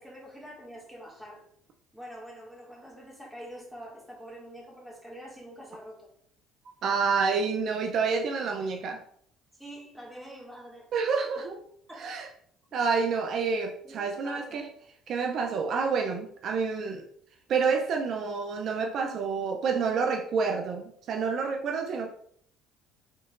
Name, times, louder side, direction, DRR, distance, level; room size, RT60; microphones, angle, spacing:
voice 1, 0.0-1.4 1.9-6.1 9.6-10.9 11.4-11.5 11.9-12.2 12.7-12.8 13.8-14.6, equal, 5° right, -4 dB, 1.9 m, -45 dB
voice 2, 6.8-9.0 10.9-11.6 12.0-12.3 12.7-14.7 15.1-17.0 17.5-22.1, right 5 dB, 55° right, 4 dB, 0.5 m, -28 dB
5.2 x 3.8 x 2.5 m, 0.64 s
supercardioid pair, 95°, 0 cm